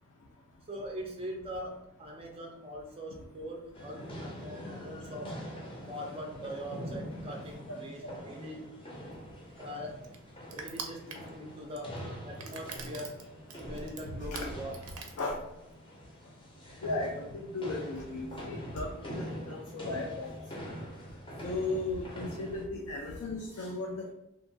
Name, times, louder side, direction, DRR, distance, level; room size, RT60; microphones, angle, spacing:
voice 1, 0.7-5.5 5.8-8.8 9.6-10.1 10.5-13.2 13.6-14.7, equal, 25° right, 1 dB, 0.3 m, -42 dB
sound 1, 3.7-22.7, equal, 25° left, 0.5 m, -44 dB
voice 2, 7.7-8.2 14.1-14.4 15.2-15.4 16.8-20.4 21.4-24.1, left 2 dB, 80° left, -1 dB, 0.4 m, -36 dB
Crushing, 9.0-15.8, right 5 dB, 85° right, 0.4 m, -45 dB
2.8 x 2.2 x 2.6 m, 0.81 s
head